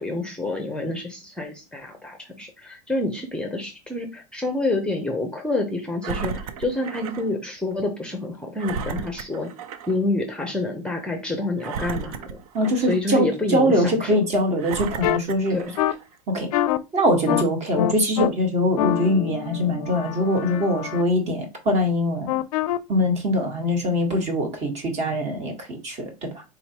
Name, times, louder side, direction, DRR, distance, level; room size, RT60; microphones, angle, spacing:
voice 1, 0.0-9.5 9.9-12.4 12.9-14.2 15.5-15.7, left 2 dB, 5° left, 4 dB, 0.6 m, -28 dB
Engine, 6.0-7.3 7.7-7.8 8.6-10.0 10.4-10.5 11.6-13.1 13.7-13.8 14.6-16.0 16.7-16.8, right 6 dB, 75° right, 0.6 m, -34 dB
voice 2, 12.5-15.6 16.3-16.5 16.9-22.4 22.9-26.4, equal, 35° right, 3 dB, 1.5 m, -23 dB
sound 1, 15.0-15.2 15.8-15.9 16.5-16.8 17.3-17.4 17.8-18.3 18.8-21.0 22.3-22.8, left 13 dB, 75° left, 0.4 m, -25 dB
3.9 x 2.9 x 2.9 m, 0.27 s
supercardioid pair, 115°, 19 cm